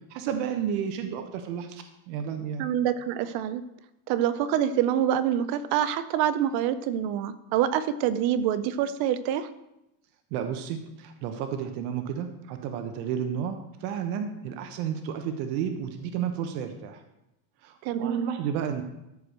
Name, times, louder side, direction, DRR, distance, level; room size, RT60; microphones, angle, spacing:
voice 1, 0.1-2.7 10.3-17.0 17.6-18.8, right 8 dB, 85° right, 6 dB, 1.2 m, -32 dB
voice 2, 2.6-3.6 4.1-9.5 17.8-18.3, right 10 dB, 55° right, 13 dB, 0.7 m, -26 dB
13.5 x 4.8 x 6.7 m, 0.90 s
cardioid pair, 170°, 45 cm